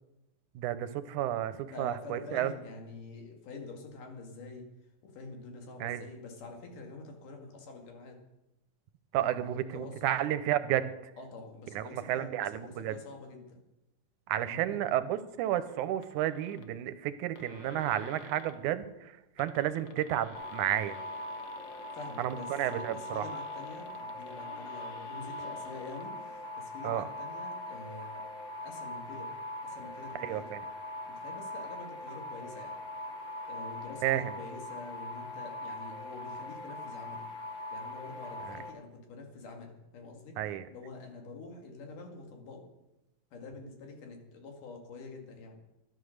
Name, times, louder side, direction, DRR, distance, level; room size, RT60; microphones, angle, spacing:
voice 1, 0.6-2.5 5.8-6.1 9.1-10.9 11.8-13.0 14.3-21.0 22.2-23.3 26.8-27.0 30.2-30.6 34.0-34.3 38.5-38.6 40.4-40.7, right 12 dB, 80° right, 13 dB, 2.1 m, -32 dB
voice 2, 1.7-4.7 5.0-8.2 9.2-10.1 11.2-13.6 14.5-14.8 21.8-28.2 28.6-29.3 29.6-30.5 31.1-32.8 33.5-37.3 37.7-40.4 40.7-42.6 43.3-45.6, left 3 dB, 85° left, 2 dB, 3.7 m, -46 dB
sound 1, 16.0-16.7 17.1-17.2 17.4-18.6 19.2-26.1, left 5 dB, 65° left, 1.1 m, -52 dB
sound 2, 20.3-38.7, left 1 dB, 30° left, 1.6 m, -41 dB
13.0 x 11.0 x 6.5 m, 0.95 s
omnidirectional pair, 3.6 m